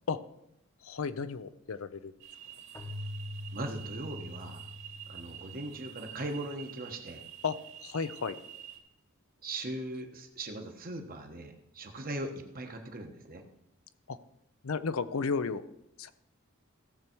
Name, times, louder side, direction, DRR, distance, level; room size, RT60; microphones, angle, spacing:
voice 1, 0.8-2.1 7.4-8.4 14.1-14.2 14.6-15.7 16.0-16.1, left 5 dB, 70° left, 13 dB, 0.6 m, -33 dB
sound 1, 2.2-8.8, right 10 dB, 60° right, 2.4 m, -48 dB
Keyboard (musical), 2.8-6.3, left 1 dB, 15° left, 1.0 m, -43 dB
voice 2, 3.5-4.6 5.1-7.2 9.4-13.4, right 1 dB, 45° right, 4 dB, 1.3 m, -39 dB
16.5 x 6.8 x 4.6 m, 0.82 s
head